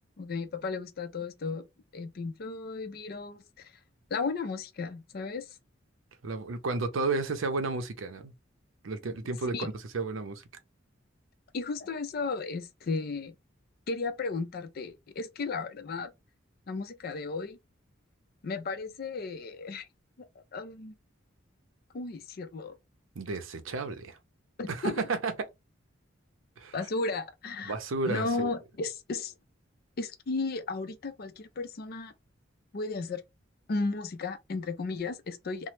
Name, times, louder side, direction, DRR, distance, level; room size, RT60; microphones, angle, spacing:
voice 1, 0.2-1.6 1.9-3.7 4.1-5.5 9.5-9.7 11.5-13.3 13.9-16.1 16.7-17.6 18.4-19.9 20.2-20.9 21.9-22.7 24.6-24.9 26.7-27.7 28.1-29.3 30.0-32.1 32.7-33.2 33.7-35.7, left 3 dB, 50° left, 0.4 m, -34 dB
voice 2, 6.2-8.3 8.8-10.4 23.2-24.2 24.7-25.5 26.6-26.8 27.6-28.5, right 3 dB, 75° right, 0.6 m, -32 dB
2.9 x 2.0 x 3.1 m
head